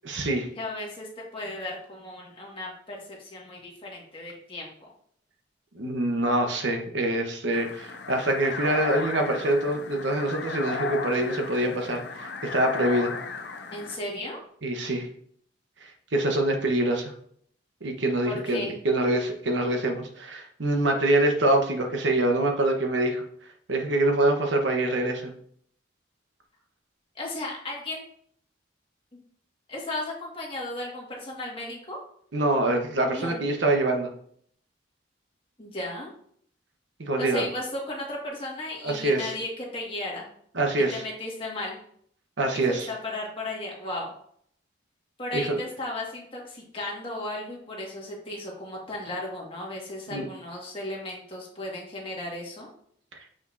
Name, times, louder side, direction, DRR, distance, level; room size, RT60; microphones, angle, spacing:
voice 1, 0.0-0.5 5.7-13.1 14.6-15.1 15.8-17.1 17.8-23.2 23.7-25.3 32.3-34.1 37.0-37.5 38.8-39.3 40.5-41.0 42.4-42.9 45.3-45.6 50.1-50.3 53.1-53.2, right 1 dB, 75° right, 3 dB, 1.0 m, -25 dB
voice 2, 0.6-4.7 13.7-14.4 18.3-18.8 27.2-28.0 29.7-32.0 33.1-33.4 35.6-36.1 37.2-40.3 40.9-41.8 42.5-44.1 45.2-52.7, left 1 dB, 30° left, -3 dB, 1.8 m, -35 dB
sound 1, 7.5-14.0, left 4 dB, 60° left, 0.6 m, -35 dB
6.9 x 5.7 x 2.6 m, 0.63 s
head